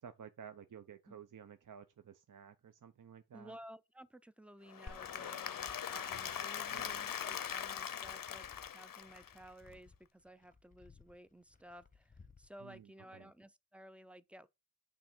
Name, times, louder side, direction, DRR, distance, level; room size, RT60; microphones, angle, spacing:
voice 1, 0.0-3.6 6.7-7.0 12.6-13.3, right 7 dB, 55° right, 0.6 m, -54 dB
voice 2, 3.3-14.5, equal, 5° right, 0.4 m, -55 dB
Applause / Crowd, 4.7-9.7, left 8 dB, 60° left, 0.6 m, -41 dB
Glass, 4.9-12.8, left 3 dB, 20° left, 0.8 m, -60 dB
8.5 x 3.5 x 5.9 m
wide cardioid pair, 110°, 38 cm